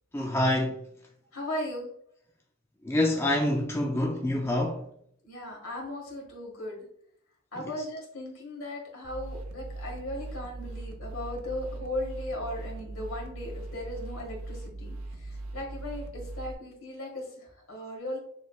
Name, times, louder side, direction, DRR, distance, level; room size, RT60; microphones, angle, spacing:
voice 1, 0.1-0.8 2.8-4.9 7.6-7.7, left 1 dB, 10° left, 0.4 m, -26 dB
voice 2, 1.3-1.9 5.2-6.8 7.5-18.2, left 1 dB, 70° left, 1.8 m, -37 dB
sound 1, 9.0-16.5, right 2 dB, 80° right, 0.8 m, -40 dB
6.9 x 3.2 x 2.4 m
head